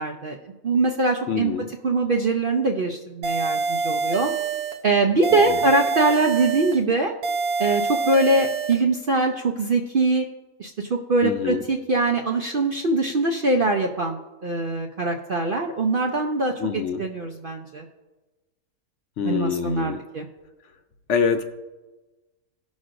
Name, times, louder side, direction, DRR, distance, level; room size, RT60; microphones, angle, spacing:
voice 1, 0.0-1.5 1.8-4.3 4.8-7.1 7.6-10.3 10.6-17.8 19.2-20.3, right 2 dB, 55° right, 2 dB, 0.6 m, -23 dB
voice 2, 1.3-1.7 5.3-5.6 11.2-11.6 16.6-17.0 19.2-20.0 21.1-21.4, left 6 dB, 65° left, 6 dB, 0.8 m, -25 dB
sound 1, 3.2-4.8 5.2-6.8 7.2-8.8, right 5 dB, 85° right, 1.3 m, -26 dB
18.0 x 6.2 x 2.5 m, 1.2 s
omnidirectional pair, 1.6 m